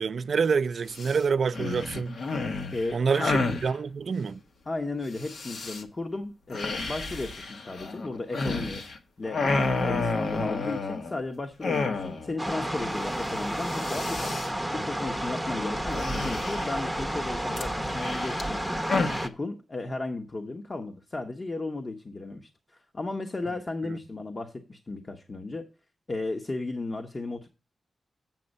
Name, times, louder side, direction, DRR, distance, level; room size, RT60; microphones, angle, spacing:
voice 1, 0.0-2.2 2.9-4.4, right 5 dB, 70° right, 0.4 m, -27 dB
sound 1, 0.9-1.2 1.5-3.7 5.2-5.8 6.5-9.0 9.2-11.2 11.6-12.4 12.7-12.8 13.0-13.3 13.6-14.5 15.9-16.9 17.6-19.3, left 3 dB, 75° left, 1.3 m, -30 dB
voice 2, 2.7-3.3 4.7-8.8 9.2-14.4 14.7-18.8 19.2-25.7 26.1-27.5, left 2 dB, 35° left, 1.0 m, -35 dB
sound 2, 12.4-19.3, right 1 dB, ahead, 0.8 m, -31 dB
7.7 x 7.6 x 5.3 m
cardioid pair, 75°, 0 cm